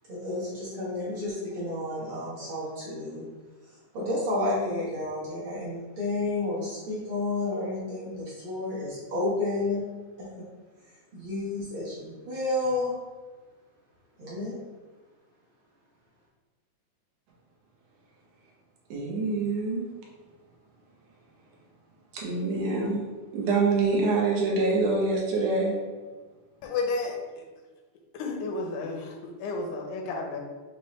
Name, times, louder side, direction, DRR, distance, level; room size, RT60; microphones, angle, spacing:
voice 1, 0.1-3.2 3.7-9.8 10.2-10.5 11.1-12.9 14.2-14.6, left 2 dB, 50° right, 1.7 m, -31 dB
voice 2, 18.9-19.8 22.1-23.1 23.3-25.8, right 3 dB, 70° right, 1.8 m, -25 dB
voice 3, 26.6-27.2 28.1-30.4, left 3 dB, 90° left, 2.2 m, -32 dB
5.7 x 2.9 x 3.1 m
omnidirectional pair, 3.6 m